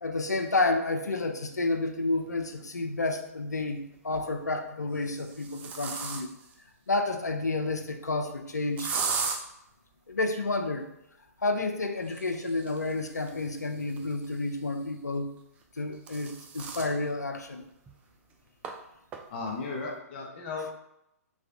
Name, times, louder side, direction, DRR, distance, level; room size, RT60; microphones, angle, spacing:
voice 1, 0.0-6.3 6.9-9.0 10.1-10.9 11.4-15.3 15.8-17.6 20.5-20.7, left 2 dB, 90° left, 6 dB, 0.4 m, -30 dB
sound 1, 2.4-2.5 3.9-4.4 4.9-6.5 8.8-9.4 12.0-14.6 15.6-16.9 17.4-17.5 17.9-18.0 18.6-18.7 19.1-19.5, right 5 dB, 15° right, 0.3 m, -37 dB
voice 2, 19.3-20.7, left 4 dB, 40° left, -1 dB, 0.7 m, -35 dB
3.2 x 3.2 x 2.6 m, 0.82 s
figure-of-eight pair, 125°, 9 cm